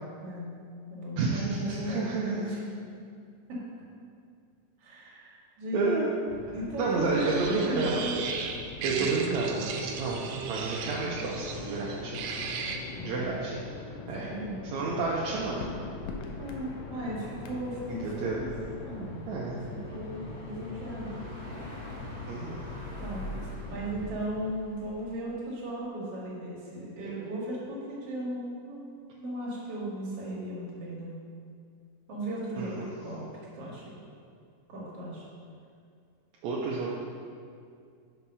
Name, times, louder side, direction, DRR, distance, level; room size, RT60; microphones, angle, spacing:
voice 1, 0.2-0.6 0.9-2.6 3.5-3.6 4.8-6.0 6.5-8.2 8.8-9.1 12.9-13.2 14.2-14.6 16.4-18.5 18.8-21.2 23.0-28.9 29.2-31.1 32.1-33.2 33.5-34.0 34.7-35.2, right 1 dB, 50° right, -6 dB, 2.4 m, -37 dB
voice 2, 1.2-2.5 5.7-6.1 6.8-8.2 8.8-12.4 13.0-13.6 14.1-14.3 14.7-15.7 17.9-18.4 19.3-19.6 22.3-22.6 32.6-32.9 36.4-37.0, right 3 dB, 75° right, -4 dB, 1.8 m, -30 dB
sound 1, 6.3-24.2, left 4 dB, 75° left, 1.6 m, -42 dB
sound 2, 7.1-12.8, right 6 dB, 90° right, 2.3 m, -35 dB
the road, 15.7-25.1, left 1 dB, 45° left, 2.0 m, -45 dB
5.9 x 5.7 x 5.4 m, 2.3 s
omnidirectional pair, 3.8 m